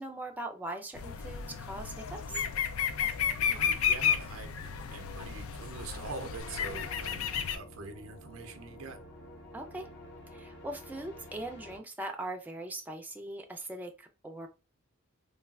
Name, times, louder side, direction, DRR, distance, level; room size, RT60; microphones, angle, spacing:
voice 1, 0.0-2.4 9.5-9.9 10.3-14.5, right 2 dB, 10° right, 0.3 m, -40 dB
sound 1, 0.9-7.6, left 7 dB, 80° left, 0.4 m, -32 dB
voice 2, 3.5-4.6 4.9-9.0, right 3 dB, 75° right, 0.6 m, -44 dB
sound 2, 6.4-11.8, left 1 dB, 55° left, 0.8 m, -50 dB
3.1 x 2.3 x 2.3 m
head